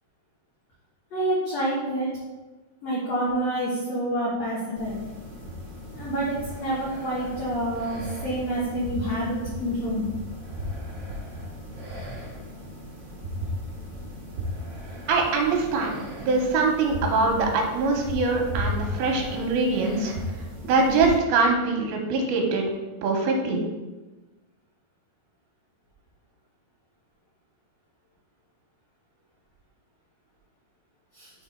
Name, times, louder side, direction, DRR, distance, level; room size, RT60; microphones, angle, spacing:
voice 1, 1.1-2.1 2.8-5.0 6.0-10.1 31.1-31.3, right 1 dB, 70° left, -6 dB, 1.5 m, -28 dB
sound 1, 4.8-21.2, equal, 55° right, 1.1 m, -36 dB
voice 2, 15.1-20.1 20.6-22.6 23.0-23.6, right 3 dB, 75° right, 1 dB, 2.7 m, -23 dB
6.1 x 3.8 x 4.5 m, 1.1 s
omnidirectional pair, 4.6 m